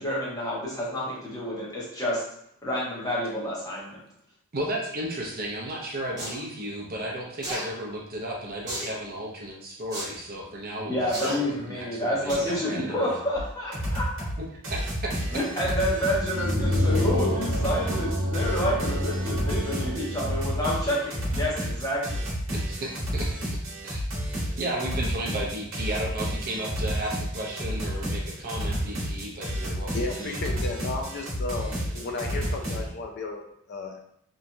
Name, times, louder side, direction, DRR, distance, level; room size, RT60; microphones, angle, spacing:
voice 1, 0.0-2.2 2.6-4.0 10.9-14.0 15.3-22.2, left 1 dB, 15° left, -6 dB, 0.8 m, -29 dB
voice 2, 4.5-13.2 14.4-15.4 16.7-16.8 22.5-23.4 23.8-24.0 24.6-30.5, right 1 dB, 45° right, -2 dB, 0.5 m, -34 dB
sound 1, 6.2-6.4 7.4-7.7 8.7-9.0 9.9-10.1 11.1-11.3 12.3-12.6 13.0-13.1, right 1 dB, 20° right, 1.0 m, -33 dB
sound 2, 13.4-13.5 13.7-14.4 14.6-32.8, equal, 60° right, 1.0 m, -31 dB
sound 3, 16.1-20.6, equal, 80° right, 0.6 m, -28 dB
voice 3, 29.2-29.5 29.9-34.0, left 3 dB, 50° left, 3 dB, 0.3 m, -34 dB
3.0 x 2.3 x 2.6 m, 0.73 s
head